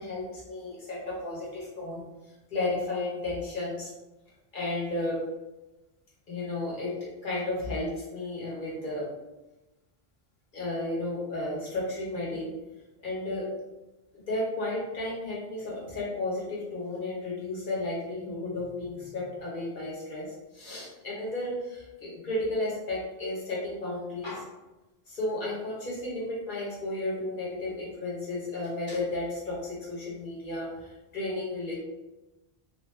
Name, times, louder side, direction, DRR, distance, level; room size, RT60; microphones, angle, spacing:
voice 1, 0.0-2.0 2.5-3.9 4.5-5.2 6.3-7.0 7.2-9.1 10.5-12.5 13.0-13.5 14.3-24.5 25.1-31.8, left 2 dB, 55° left, -6 dB, 1.3 m, -33 dB
3.0 x 2.5 x 3.2 m, 1.0 s
omnidirectional pair, 1.0 m